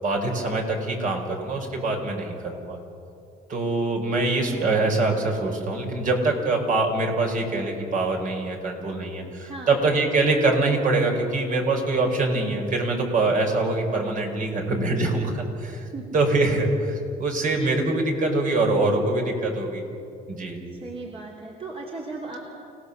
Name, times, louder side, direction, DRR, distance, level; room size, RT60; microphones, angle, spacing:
voice 1, 0.0-2.8 3.5-15.9 16.1-19.8 20.3-20.6, right 2 dB, 50° right, 2 dB, 5.3 m, -24 dB
voice 2, 9.4-9.8 15.9-16.2 20.7-22.4, right 3 dB, 35° right, -2 dB, 3.2 m, -37 dB
29.5 x 18.0 x 7.0 m, 2.6 s
cardioid pair, 110°, 17 cm